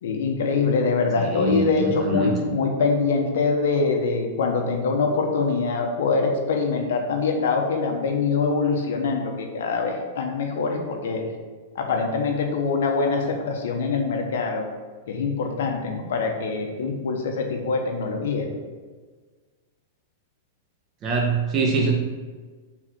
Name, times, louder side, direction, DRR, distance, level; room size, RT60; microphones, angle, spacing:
voice 1, 0.0-11.2 11.7-14.7 15.1-18.5, left 4 dB, 80° left, 3 dB, 1.2 m, -24 dB
voice 2, 1.2-2.3 21.0-21.9, right 3 dB, 30° right, -1 dB, 1.3 m, -24 dB
4.8 x 4.1 x 5.8 m, 1.4 s
supercardioid pair, 140°, 0 cm